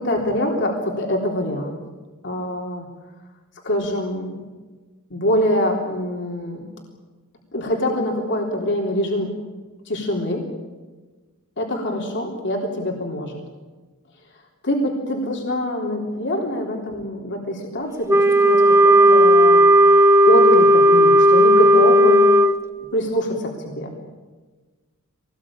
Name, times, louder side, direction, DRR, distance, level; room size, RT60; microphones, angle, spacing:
voice 1, 0.0-1.8 2.2-2.9 3.6-4.4 5.1-6.6 7.5-9.3 9.9-10.5 11.6-13.4 14.6-22.3 22.9-23.9, equal, 55° left, 0 dB, 3.6 m, -24 dB
Wind instrument woodwind instrument, 18.1-22.6, equal, 15° right, 1.0 m, -13 dB
23.5 x 19.0 x 8.7 m, 1.3 s
head